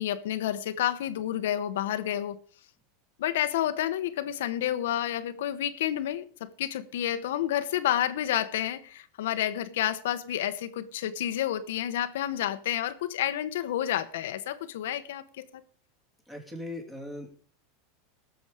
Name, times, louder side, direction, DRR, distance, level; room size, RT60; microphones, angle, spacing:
voice 1, 0.0-2.4 3.2-15.6, left 11 dB, 85° left, 1.0 m, -30 dB
voice 2, 16.3-17.5, left 1 dB, 5° right, 2.9 m, -39 dB
18.0 x 7.0 x 5.0 m
supercardioid pair, 145°, 0 cm